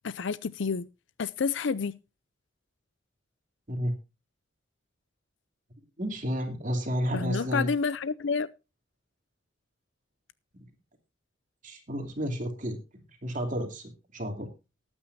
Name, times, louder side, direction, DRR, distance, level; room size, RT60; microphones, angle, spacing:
voice 1, 0.0-0.9 1.2-2.0 7.1-8.5, left 5 dB, 70° left, 0.5 m, -29 dB
voice 2, 6.0-7.7 11.6-12.8 13.2-14.5, equal, 40° right, 2.9 m, -31 dB
19.5 x 9.0 x 2.7 m
head